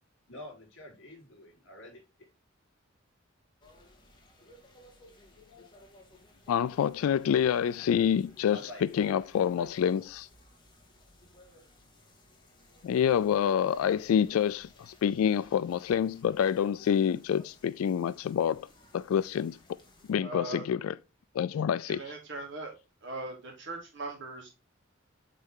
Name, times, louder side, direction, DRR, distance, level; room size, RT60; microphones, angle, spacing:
voice 1, 0.3-2.0 8.4-9.9, left 1 dB, 65° left, 4.2 m, -48 dB
sound 1, 3.6-20.1, left 1 dB, 25° left, 2.0 m, -59 dB
voice 2, 6.5-10.3 12.8-18.7 18.9-19.6 20.1-20.9 21.3-22.0, left 8 dB, 90° left, 0.3 m, -27 dB
voice 3, 20.2-20.7 21.9-22.7 23.0-24.5, right 2 dB, 60° right, 2.7 m, -40 dB
8.0 x 4.2 x 3.7 m
head